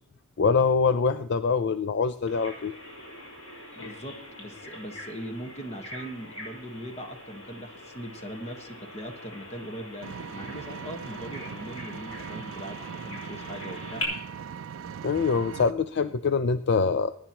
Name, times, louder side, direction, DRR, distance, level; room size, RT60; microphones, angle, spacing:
voice 1, 0.4-2.7 15.0-17.2, left 5 dB, 55° left, 12 dB, 0.4 m, -24 dB
Bird vocalization bird call bird song, 2.3-14.0, left 1 dB, 90° left, 5.4 m, -43 dB
voice 2, 3.8-14.0, equal, 30° left, 6 dB, 1.4 m, -40 dB
Vehicle, 10.0-15.7, right 7 dB, 65° right, 0.3 m, -40 dB
22.0 x 9.8 x 3.0 m, 0.72 s
head